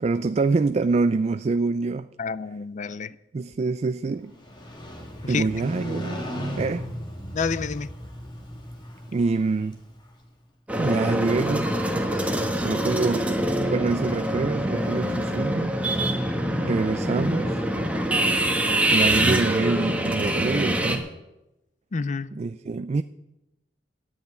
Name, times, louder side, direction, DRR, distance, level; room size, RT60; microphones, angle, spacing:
voice 1, 0.0-2.1 3.3-4.4 5.3-6.2 6.6-6.8 9.1-9.8 10.8-11.7 12.6-13.3 13.6-15.7 16.6-17.6 18.9-21.1 22.3-23.0, right 3 dB, 35° right, 0.3 m, -25 dB
voice 2, 2.2-3.1 5.2-5.4 7.3-7.9 12.2-12.3 21.9-22.3, left 5 dB, 40° left, 0.5 m, -29 dB
Motorcycle, 4.3-10.2, equal, 25° left, 1.9 m, -36 dB
sound 1, 10.7-21.0, right 1 dB, 10° right, 1.5 m, -24 dB
10.5 x 8.2 x 9.5 m
head